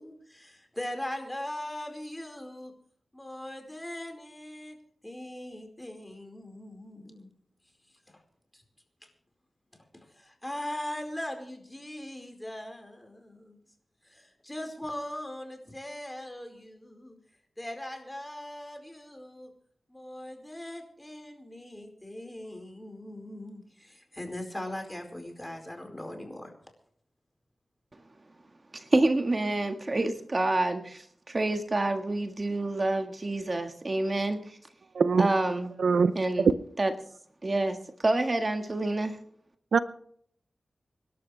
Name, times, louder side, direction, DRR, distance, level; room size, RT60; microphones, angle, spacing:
voice 1, 0.0-2.7 3.1-4.8 5.0-7.3 8.1-8.2 8.5-8.6 9.9-13.6 14.0-17.2 17.6-19.5 19.9-26.5, left 1 dB, 15° left, 4 dB, 4.7 m, -40 dB
voice 2, 28.7-34.6 35.2-35.7 36.2-36.5 36.8-36.9 37.4-39.2, right 2 dB, 40° right, 6 dB, 1.6 m, -28 dB
voice 3, 34.9-35.3 35.8-36.5 39.7-39.8, right 5 dB, 90° right, 13 dB, 0.7 m, -23 dB
26.0 x 12.0 x 3.3 m, 0.64 s
wide cardioid pair, 70°, 0 cm